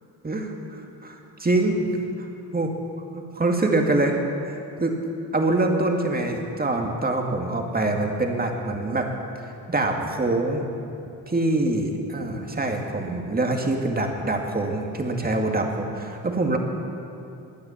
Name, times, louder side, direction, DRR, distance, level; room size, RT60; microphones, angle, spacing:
voice 1, 0.2-1.9 2.2-2.3 2.5-2.7 3.1-4.9 5.3-9.1 9.7-10.7 11.3-16.6, right 2 dB, 20° right, 2 dB, 2.2 m, -25 dB
16.0 x 9.5 x 7.2 m, 2.6 s
supercardioid pair, 65°, 43 cm